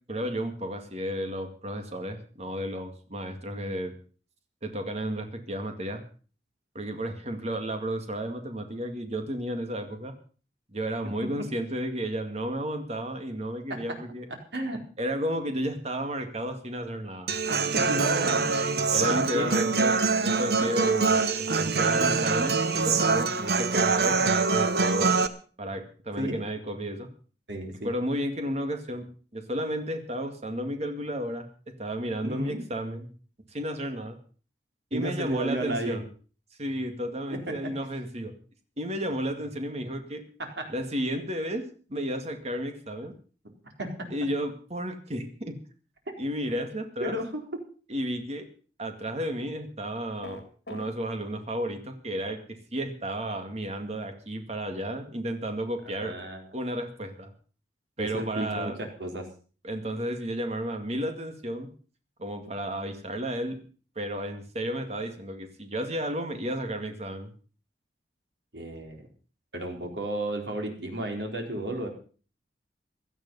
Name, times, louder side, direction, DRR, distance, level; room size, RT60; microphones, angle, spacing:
voice 1, 0.1-3.9 4.6-6.0 6.7-10.1 10.7-14.3 15.0-17.3 18.9-20.0 20.2-25.1 25.6-27.1 27.8-29.1 29.3-31.5 31.8-33.1 33.5-34.2 34.9-36.0 36.6-38.3 38.8-40.2 40.7-43.1 44.1-45.6 46.2-47.2 47.9-48.5 48.8-50.4 50.7-56.1 56.5-57.3 58.0-58.7 59.6-61.7 62.2-63.6 64.0-67.3, equal, 40° right, 6 dB, 2.1 m, -32 dB
Human voice / Acoustic guitar, 17.3-25.3, right 4 dB, 65° right, 1.2 m, -24 dB
voice 2, 17.7-18.5 19.0-19.5 26.2-26.3 27.5-27.9 32.2-32.6 34.9-36.0 37.3-37.4 40.4-40.7 43.8-44.1 46.1-46.2 47.0-47.6 55.9-56.5 58.0-59.3 68.5-69.1 69.5-71.9, right 1 dB, 80° right, 3 dB, 4.1 m, -33 dB
sound 1, 50.2-50.9, equal, 65° left, 2.8 m, -41 dB
16.5 x 12.5 x 5.5 m, 0.40 s
head